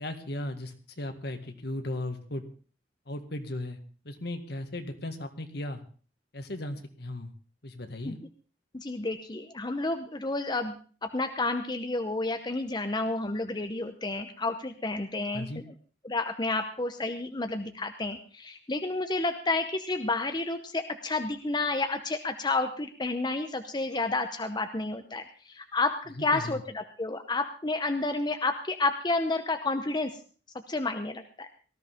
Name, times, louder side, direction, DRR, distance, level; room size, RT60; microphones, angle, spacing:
voice 1, 0.0-2.4 3.1-3.8 4.0-5.8 6.3-7.3 7.6-8.2 15.3-15.6 26.2-26.6, left 1 dB, 60° left, 7 dB, 1.9 m, -36 dB
voice 2, 8.7-10.7 11.0-15.5 16.0-30.2 30.7-31.5, left 2 dB, 25° left, 7 dB, 0.8 m, -30 dB
18.5 x 14.0 x 3.6 m, 0.39 s
head